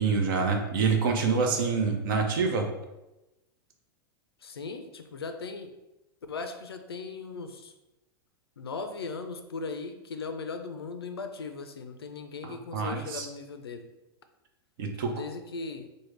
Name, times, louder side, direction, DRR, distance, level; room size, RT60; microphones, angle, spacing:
voice 1, 0.0-2.6 12.4-13.3 14.8-15.1, right 5 dB, 60° right, 3 dB, 0.6 m, -26 dB
voice 2, 1.6-2.0 4.4-5.7 6.3-7.7 8.6-13.9 15.1-15.9, left 4 dB, 85° left, 7 dB, 0.4 m, -38 dB
3.4 x 2.1 x 3.2 m, 0.97 s
hypercardioid pair, 100°, 13 cm